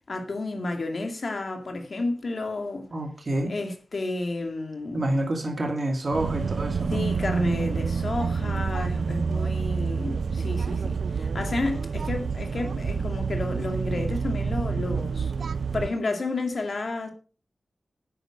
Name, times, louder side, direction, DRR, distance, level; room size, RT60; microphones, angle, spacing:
voice 1, 0.1-2.9 3.5-5.1 6.9-15.3 15.7-17.1, left 2 dB, 55° left, 2.2 m, -31 dB
voice 2, 2.9-3.5 4.9-7.0, right 1 dB, 40° right, 2.5 m, -28 dB
sound 1, 6.1-15.9, right 5 dB, 85° right, 0.4 m, -28 dB
10.0 x 8.9 x 5.0 m
wide cardioid pair, 120°, 0 cm